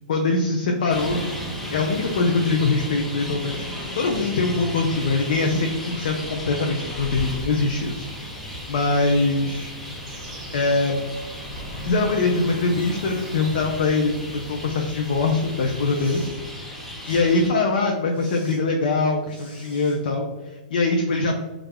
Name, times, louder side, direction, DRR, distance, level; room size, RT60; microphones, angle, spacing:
voice 1, 0.1-1.2 1.7-8.3 8.7-9.7 10.5-10.9 11.8-16.2 16.6-16.7 17.1-21.4, left 3 dB, 75° left, 1 dB, 0.4 m, -23 dB
Traffic noise roadway noise, 0.9-17.5, equal, 5° left, 0.4 m, -35 dB
sound 1, 7.1-16.3, right 1 dB, 40° right, 0.6 m, -43 dB
Respiratory sounds, 15.9-16.4 17.0-17.2 18.1-18.6 19.3-20.0, equal, 25° left, 1.1 m, -46 dB
2.3 x 2.1 x 3.4 m, 1.2 s
hypercardioid pair, 150°, 5 cm